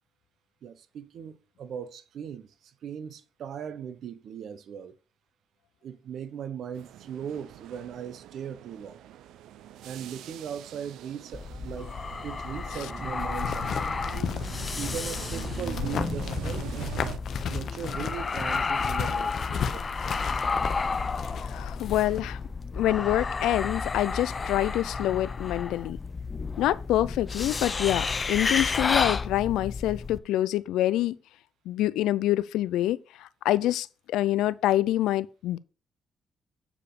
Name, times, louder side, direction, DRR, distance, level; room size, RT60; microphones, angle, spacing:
voice 1, 0.6-5.0 5.8-9.0 9.8-11.9 12.2-14.0 14.8-16.9 17.5-20.6, right 8 dB, 70° right, 0.9 m, -39 dB
sound 1, 6.7-17.2, right 11 dB, 85° right, 0.5 m, -42 dB
sound 2, 11.3-30.2, left 4 dB, 35° left, 0.5 m, -32 dB
sound 3, 13.2-22.2, left 7 dB, 60° left, 1.0 m, -35 dB
voice 2, 21.4-22.4 22.8-26.0 26.6-31.2 31.7-35.6, left 14 dB, 90° left, 0.4 m, -26 dB
8.4 x 5.0 x 4.9 m
cardioid pair, 90°, 0 cm